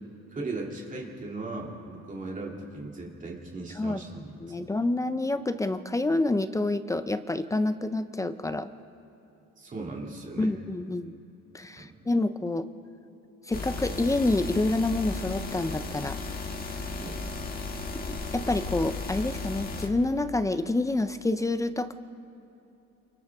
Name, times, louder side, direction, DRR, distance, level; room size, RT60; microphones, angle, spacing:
voice 1, 0.3-4.6 9.6-10.5 11.8-11.9 17.0-17.2, right 3 dB, 25° right, -2 dB, 2.5 m, -38 dB
voice 2, 4.4-8.7 10.4-11.1 11.5-12.7 13.5-16.2 16.7-16.9 18.3-21.9, left 2 dB, 10° left, 11 dB, 0.4 m, -28 dB
sound 1, 13.5-19.9, left 3 dB, 30° left, 1.6 m, -35 dB
29.0 x 25.5 x 3.5 m, 3.0 s
cardioid pair, 160°, 30 cm